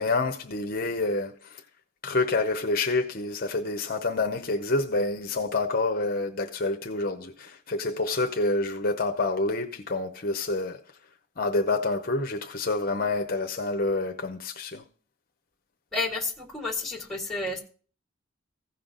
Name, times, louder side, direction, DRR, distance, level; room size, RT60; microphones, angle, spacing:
voice 1, 0.0-1.6 2.0-10.8 11.4-14.8, left 2 dB, 45° left, 0.8 m, -28 dB
voice 2, 15.9-17.6, left 2 dB, ahead, 1.9 m, -31 dB
15.5 x 5.8 x 3.8 m
head